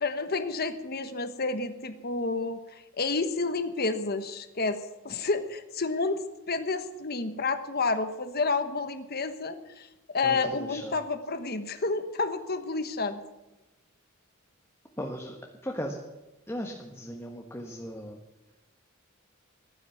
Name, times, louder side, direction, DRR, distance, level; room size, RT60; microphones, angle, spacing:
voice 1, 0.0-2.6 3.0-4.8 5.0-9.9 10.1-13.2, left 3 dB, 45° left, 9 dB, 1.2 m, -30 dB
voice 2, 10.2-11.0 15.0-16.0 16.5-18.2, equal, 10° left, 1 dB, 1.5 m, -37 dB
15.0 x 12.5 x 7.1 m, 1.0 s
head